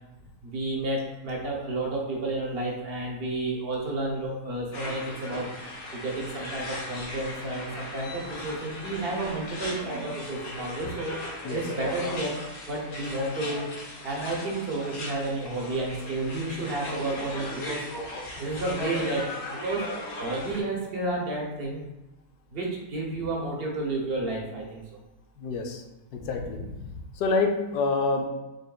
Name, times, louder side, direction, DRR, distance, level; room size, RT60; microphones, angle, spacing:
voice 1, 0.4-11.2 11.5-19.8 20.2-21.8 22.5-24.8, right 2 dB, 45° right, -2 dB, 0.9 m, -31 dB
sound 1, 4.7-20.6, left 1 dB, 65° left, 1.4 m, -37 dB
voice 2, 25.4-25.8 26.1-26.6 27.2-28.3, left 4 dB, 80° left, 3 dB, 1.1 m, -26 dB
5.2 x 3.1 x 2.3 m, 1.0 s
omnidirectional pair, 1.7 m